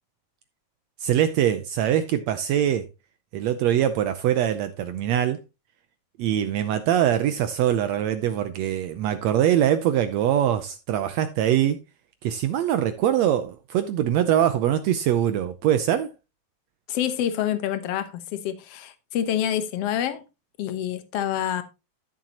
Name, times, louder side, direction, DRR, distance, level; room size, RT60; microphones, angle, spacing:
voice 1, 1.0-2.9 3.3-5.4 6.2-11.8 12.2-16.1, right 10 dB, 85° right, 1.5 m, -23 dB
voice 2, 16.9-20.2 20.6-21.6, left 10 dB, 65° left, 1.6 m, -27 dB
13.0 x 7.2 x 2.9 m
omnidirectional pair, 3.9 m